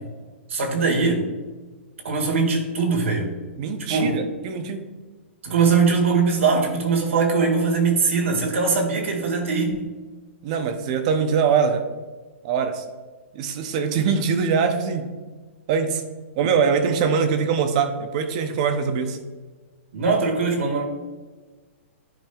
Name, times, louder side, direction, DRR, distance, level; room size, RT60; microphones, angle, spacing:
voice 1, 0.5-1.3 2.0-3.3 3.9-4.1 5.4-9.9 19.9-20.8, right 4 dB, 75° right, 1 dB, 1.9 m, -21 dB
voice 2, 3.6-4.8 10.4-11.8 12.4-12.8 13.3-15.1 15.7-16.0 16.4-19.2, right 6 dB, 30° right, 8 dB, 0.6 m, -23 dB
10.5 x 5.2 x 2.3 m, 1.3 s
hypercardioid pair, 170°, 7 cm